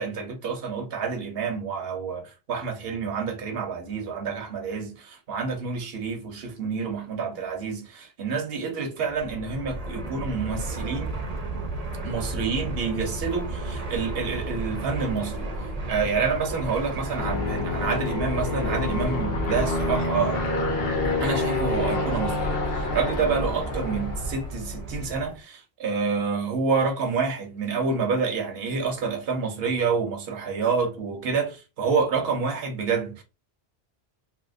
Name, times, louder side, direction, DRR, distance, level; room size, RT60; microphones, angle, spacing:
voice 1, 0.0-11.2 12.0-20.5 21.2-33.2, right 5 dB, 70° right, 1.0 m, -28 dB
Fixed-wing aircraft airplane, 9.1-25.4, right 2 dB, 45° right, 0.7 m, -34 dB
Aircraft, 17.2-24.5, left 2 dB, 65° left, 1.1 m, -27 dB
2.9 x 2.8 x 2.5 m
omnidirectional pair, 1.1 m